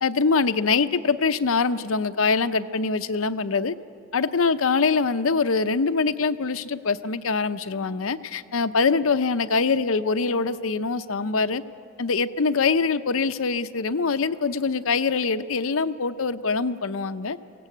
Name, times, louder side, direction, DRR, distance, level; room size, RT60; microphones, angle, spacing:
voice 1, 0.0-3.8 4.1-11.6 12.0-17.4, left 4 dB, 70° left, 11 dB, 0.7 m, -24 dB
23.5 x 17.5 x 8.4 m, 2.5 s
head